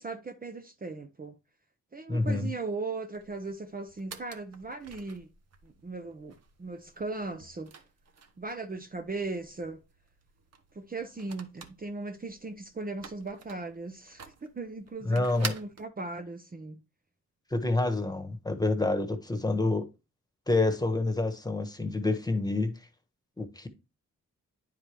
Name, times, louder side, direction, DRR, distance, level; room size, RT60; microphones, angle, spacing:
voice 1, 0.0-1.3 1.9-5.3 5.6-7.8 8.4-9.8 10.7-16.8, right 3 dB, 30° right, 0.8 m, -38 dB
voice 2, 2.1-2.5 15.0-15.6 17.5-19.8 20.5-22.8 23.4-23.7, left 2 dB, 10° left, 1.3 m, -28 dB
sound 1, 3.1-15.9, right 5 dB, 55° right, 1.1 m, -47 dB
9.8 x 4.8 x 3.4 m
cardioid pair, 80°, 31 cm